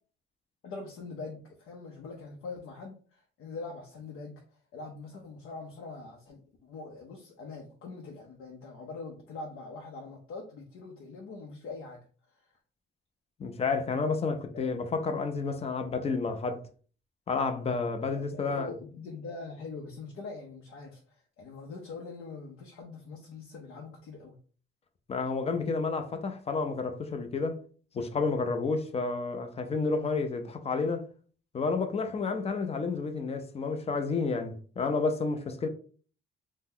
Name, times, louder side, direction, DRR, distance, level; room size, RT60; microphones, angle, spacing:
voice 1, 0.6-4.4 4.7-12.0 14.5-14.7 18.1-24.4, left 3 dB, 80° left, 0.6 m, -43 dB
voice 2, 13.4-16.6 17.3-18.7 25.1-27.6 27.9-31.0 31.5-35.7, left 4 dB, 30° left, 0.4 m, -30 dB
2.7 x 2.1 x 3.6 m
cardioid pair, 140°, 21 cm